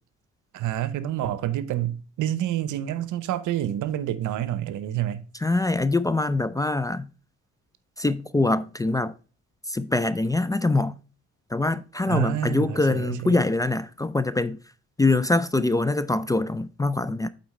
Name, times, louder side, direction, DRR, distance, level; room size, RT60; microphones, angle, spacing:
voice 1, 0.5-5.2 12.1-13.4, right 12 dB, 80° right, 0.8 m, -28 dB
voice 2, 5.4-7.1 8.0-9.1 9.7-10.9 11.5-14.6 15.0-17.3, left 2 dB, 10° left, 0.3 m, -24 dB
8.6 x 3.9 x 4.1 m
cardioid pair, 90°, 30 cm